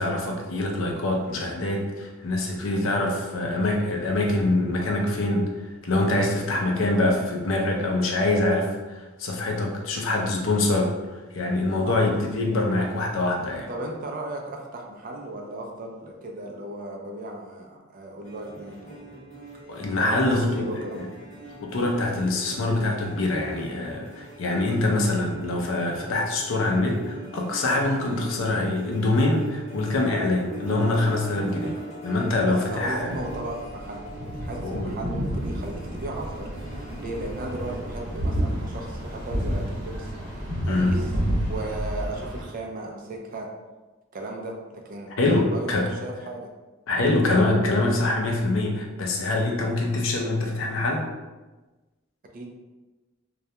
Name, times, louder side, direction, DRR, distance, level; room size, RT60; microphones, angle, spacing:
voice 1, 0.0-5.5 5.8-13.7 19.7-20.7 21.0-21.1 21.6-31.8 32.0-33.1 34.6-34.9 40.7-41.0 45.2-45.9 46.9-51.1, left 2 dB, 75° left, 1 dB, 0.5 m, -24 dB
voice 2, 13.7-19.2 20.0-21.1 32.4-36.5 37.0-40.1 40.6-41.0 41.5-43.5 44.1-46.5 52.3-52.5, right 2 dB, 45° right, 1 dB, 0.4 m, -36 dB
sound 1, 18.2-37.8, right 2 dB, 35° left, 0.7 m, -41 dB
sound 2, 32.9-42.4, equal, 65° right, 0.9 m, -30 dB
2.3 x 2.1 x 2.7 m, 1.2 s
head